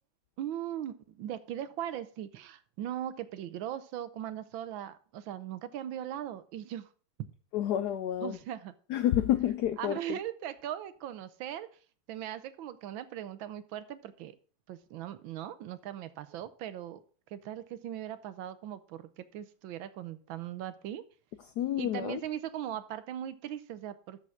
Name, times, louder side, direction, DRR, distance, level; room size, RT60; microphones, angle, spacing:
voice 1, 0.4-6.9 8.2-8.7 9.8-11.7 12.1-14.4 14.7-17.0 17.3-21.0 21.8-24.2, right 11 dB, 75° right, 1.5 m, -39 dB
voice 2, 7.5-8.4 8.9-10.0 21.6-22.2, left 11 dB, 80° left, 0.9 m, -29 dB
7.1 x 6.7 x 6.1 m
omnidirectional pair, 2.3 m